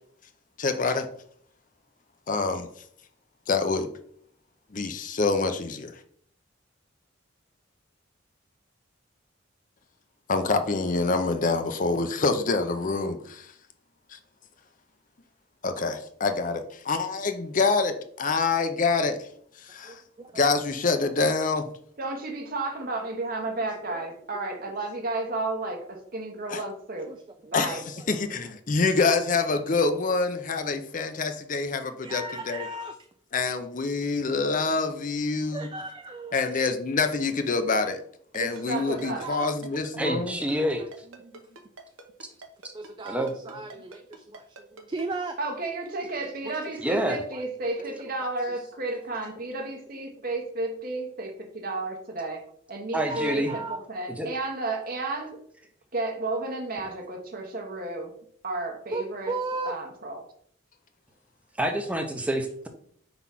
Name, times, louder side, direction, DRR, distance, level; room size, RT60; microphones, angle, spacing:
voice 1, 0.6-1.1 2.3-2.7 3.5-3.9 4.7-6.0 10.3-13.5 14.1-14.2 15.6-19.3 19.6-20.0 20.3-21.7 26.5-26.6 27.5-32.7 33.3-35.7 36.3-38.0 38.3-40.4, left 4 dB, 40° left, 8 dB, 0.6 m, -26 dB
voice 2, 19.8-20.7 23.9-24.1 24.5-24.6 27.1-28.1 32.0-33.0 35.5-36.4 39.2-40.0 40.8-40.9 41.2-41.3 42.7-45.4 46.4-46.6 46.9-47.0 47.3-47.4 47.8-48.7 53.1-53.8 58.9-59.7, right 3 dB, 25° right, 7 dB, 0.3 m, -37 dB
voice 3, 22.0-27.1 27.5-27.8 38.3-39.3 45.4-55.4 55.9-58.1 58.4-59.3 59.6-60.3, right 2 dB, 45° right, 3 dB, 1.2 m, -32 dB
Ringtone, 38.3-45.0, right 3 dB, 85° right, 1.0 m, -45 dB
voice 4, 40.0-41.0 43.0-43.3 46.8-47.2 52.9-53.5 54.2-54.3 61.6-62.7, right 1 dB, 5° right, 5 dB, 0.7 m, -27 dB
4.8 x 4.0 x 5.7 m, 0.62 s
head